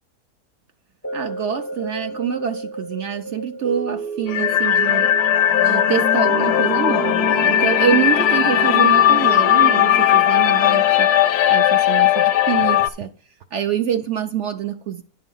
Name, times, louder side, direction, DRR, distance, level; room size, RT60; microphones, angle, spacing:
sound 1, 1.0-11.4 11.9-12.0, right 4 dB, 15° left, 0.4 m, -32 dB
voice 1, 1.1-5.1 5.6-11.1 11.5-13.1 13.5-15.0, right 9 dB, 65° right, 0.7 m, -25 dB
sound 2, 4.3-12.9, left 11 dB, 80° left, 1.1 m, -17 dB
9.8 x 4.8 x 5.4 m
omnidirectional pair, 1.7 m